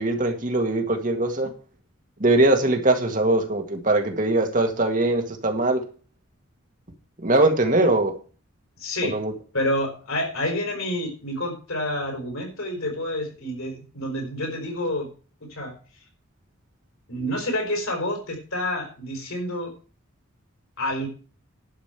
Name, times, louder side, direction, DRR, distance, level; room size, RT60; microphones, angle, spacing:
voice 1, 0.0-1.5 2.2-5.8 7.2-8.1 9.0-9.3, right 2 dB, 40° right, 5 dB, 1.8 m, -21 dB
voice 2, 8.8-9.2 9.5-15.1 15.5-15.7 17.1-19.7 20.8-21.1, left 1 dB, 85° left, 2 dB, 5.0 m, -28 dB
11.5 x 5.2 x 8.1 m, 0.38 s
head